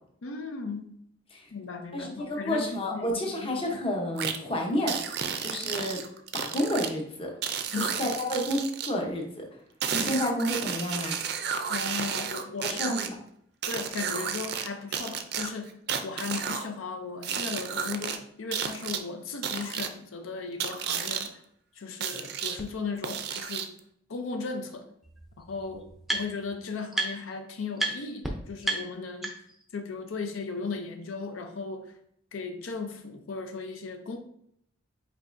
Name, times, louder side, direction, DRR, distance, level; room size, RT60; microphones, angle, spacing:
voice 1, 0.2-1.0 1.5-3.1 3.4-3.8 7.7-7.9 11.7-13.0 13.7-21.4 21.8-23.7 24.1-24.9 25.4-29.4 29.7-31.9 32.3-34.2, left 4 dB, 85° left, 6 dB, 0.6 m, -36 dB
voice 2, 1.9-5.0 5.4-6.0 6.3-7.3 7.7-9.4 9.9-11.2 12.6-13.2, left 1 dB, 30° left, 1 dB, 0.8 m, -30 dB
sound 1, 4.2-4.4 4.9-6.9 7.4-8.9 9.8-13.1 13.6-14.7 14.9-16.7 17.2-18.2 18.5-19.0 19.4-19.9 20.6-21.3 22.0-22.6 23.0-23.8, right 7 dB, 55° right, 0.4 m, -32 dB
sound 2, 22.6-22.7 23.3-23.4 24.7-24.8 25.0-26.5 26.9-27.4 27.8-27.9 28.2-28.3 28.6-29.6, right 2 dB, ahead, 0.5 m, -32 dB
5.3 x 3.9 x 2.6 m, 0.70 s
head